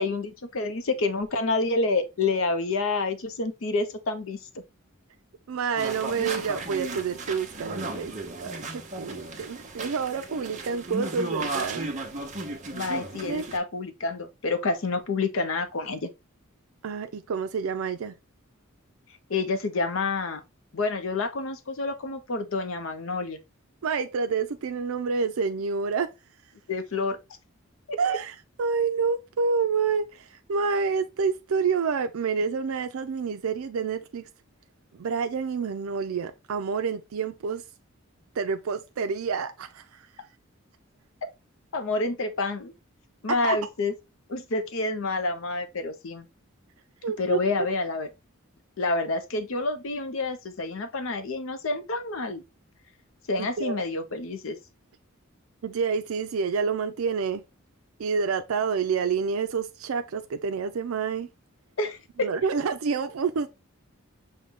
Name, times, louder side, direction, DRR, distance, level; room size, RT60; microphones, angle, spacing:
voice 1, 0.0-4.4 12.7-16.1 19.3-20.4 20.7-23.4 26.7-27.2 27.9-28.0 41.7-42.7 43.2-43.9 44.3-46.3 47.2-48.1 48.8-52.4 53.3-54.6 61.8-62.3, left 3 dB, 70° left, 0.6 m, -28 dB
voice 2, 5.5-11.9 13.3-13.4 16.8-18.1 23.8-26.1 28.0-34.3 35.0-37.6 38.4-39.8 43.4-43.6 47.0-47.4 53.4-53.8 55.6-57.4 58.0-61.3 62.2-63.5, right 5 dB, 90° right, 0.4 m, -28 dB
sound 1, 5.8-13.6, right 2 dB, 35° right, 0.8 m, -35 dB
6.3 x 2.2 x 3.6 m
head